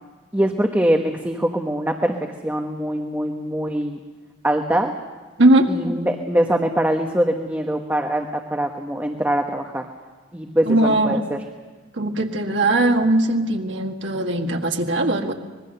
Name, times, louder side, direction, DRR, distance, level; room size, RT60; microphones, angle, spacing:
voice 1, 0.3-2.2 2.4-4.0 4.4-4.9 5.7-9.8 10.3-11.4, right 1 dB, 10° right, 3 dB, 1.0 m, -23 dB
voice 2, 10.6-11.2 12.0-15.3, right 1 dB, 65° right, 3 dB, 1.8 m, -19 dB
24.5 x 21.0 x 6.8 m, 1.3 s
head